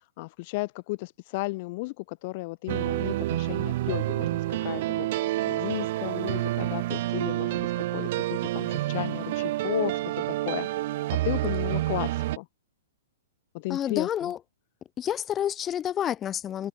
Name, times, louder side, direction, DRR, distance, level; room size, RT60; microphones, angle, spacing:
voice 1, 0.0-10.7 11.2-12.5 13.5-14.3, left 24 dB, 45° left, 2.2 m, -34 dB
sound 1, 2.7-12.4, right 16 dB, 55° right, 1.5 m, -28 dB
voice 2, 13.7-14.4 15.0-16.7, left 10 dB, 25° left, 1.6 m, -29 dB
hypercardioid pair, 120°, 0 cm